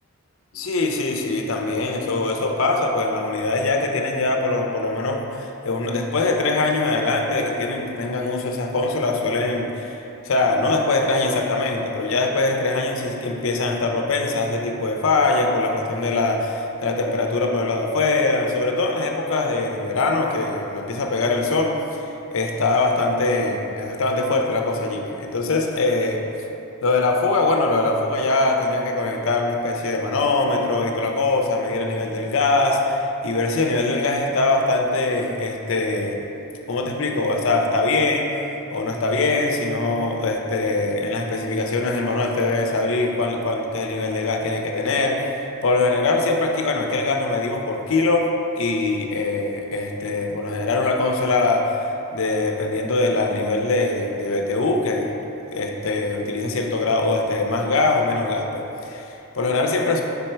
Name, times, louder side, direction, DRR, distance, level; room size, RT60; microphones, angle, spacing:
voice 1, 0.5-10.0 10.2-26.2 26.8-36.2 36.7-38.4 38.7-51.8 52.1-55.2 55.5-60.0, left 2 dB, 60° left, 3 dB, 0.6 m, -22 dB
5.6 x 4.4 x 4.4 m, 2.9 s
head